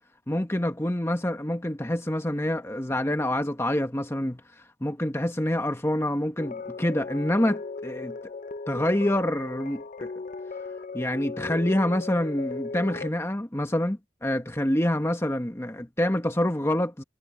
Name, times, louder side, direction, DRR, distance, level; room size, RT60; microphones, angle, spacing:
voice 1, 0.3-4.4 4.8-8.2 8.7-10.1 10.9-17.0, left 1 dB, 15° left, 1.2 m, -26 dB
sound 1, 6.4-13.1, left 4 dB, 40° left, 0.5 m, -37 dB
head